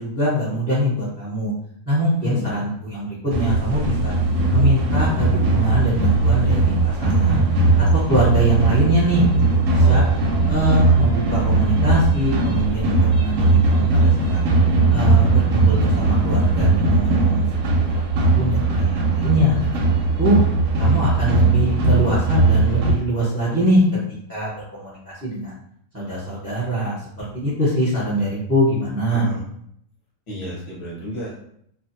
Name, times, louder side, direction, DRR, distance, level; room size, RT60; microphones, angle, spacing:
voice 1, 0.0-1.5 1.9-4.1 4.5-7.4 7.8-10.0 10.5-14.4 14.9-17.4 17.8-19.9 20.2-20.4 20.8-23.8 24.3-25.6 25.9-29.2, equal, 15° right, -7 dB, 0.7 m, -23 dB
voice 2, 2.2-2.5 9.8-10.8 11.4-11.7 20.8-21.2 29.1-29.4 30.3-31.3, equal, 25° left, -4 dB, 0.7 m, -33 dB
sound 1, 3.3-22.9, right 3 dB, 70° right, 0.9 m, -18 dB
2.4 x 2.4 x 2.6 m, 0.69 s
omnidirectional pair, 1.7 m